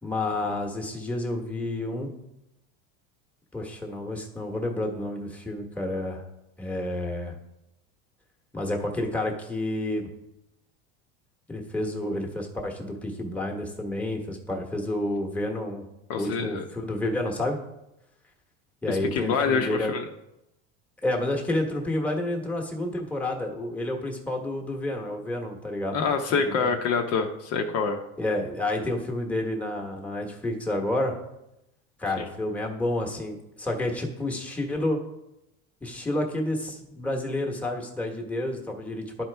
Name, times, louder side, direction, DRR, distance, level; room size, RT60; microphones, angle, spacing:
voice 1, 0.0-2.1 3.5-6.2 6.6-7.3 8.5-10.1 11.5-15.8 16.1-17.6 18.8-20.0 21.0-26.0 26.3-26.7 28.2-31.2 32.0-35.0 35.8-39.2, left 1 dB, 5° left, 1 dB, 1.1 m, -30 dB
voice 2, 16.1-16.6 18.9-20.0 25.9-28.0 32.2-32.3, left 5 dB, 50° left, 4 dB, 0.8 m, -26 dB
12.0 x 4.4 x 3.4 m, 0.90 s
supercardioid pair, 125°, 31 cm